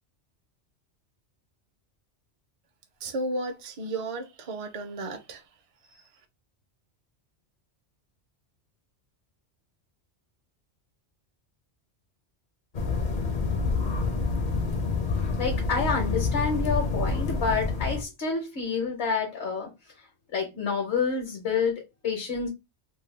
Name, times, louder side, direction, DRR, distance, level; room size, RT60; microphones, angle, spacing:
voice 1, 3.0-5.4, right 2 dB, 40° right, 0.5 m, -33 dB
sound 1, 12.7-18.0, left 4 dB, 50° left, 0.7 m, -27 dB
voice 2, 15.4-22.5, left 5 dB, 70° left, 1.1 m, -29 dB
2.7 x 2.2 x 3.1 m
omnidirectional pair, 1.2 m